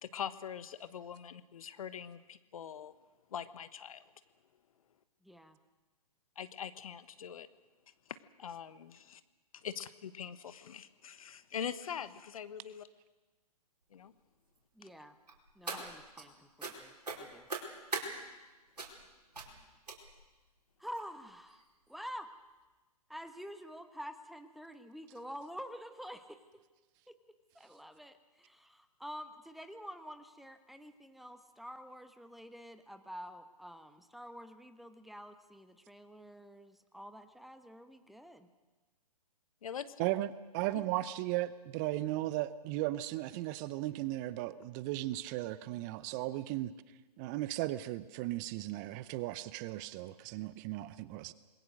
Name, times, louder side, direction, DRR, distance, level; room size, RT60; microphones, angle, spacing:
voice 1, 0.0-2.9 3.3-4.0 6.4-7.5 8.4-9.2 9.5-12.9 13.9-14.1 15.7-15.8 39.6-40.0, left 8 dB, 60° left, 14 dB, 1.3 m, -43 dB
voice 2, 5.2-5.6 14.7-15.2 15.5-17.5 20.8-21.6 21.9-22.3 23.1-26.6 27.1-27.2 27.5-38.5, equal, ahead, 9 dB, 1.2 m, -48 dB
sound 1, 15.3-16.2 16.6-16.8 17.0-18.1 18.8-19.0 19.3-19.5 19.9-20.3 20.9-21.0 21.5-21.6 21.9-22.0, right 3 dB, 80° right, 4.7 m, -40 dB
voice 3, 40.5-46.7 47.2-51.3, right 16 dB, 30° right, 17 dB, 0.7 m, -36 dB
27.5 x 21.5 x 6.5 m, 1.2 s
figure-of-eight pair, 125°, 20 cm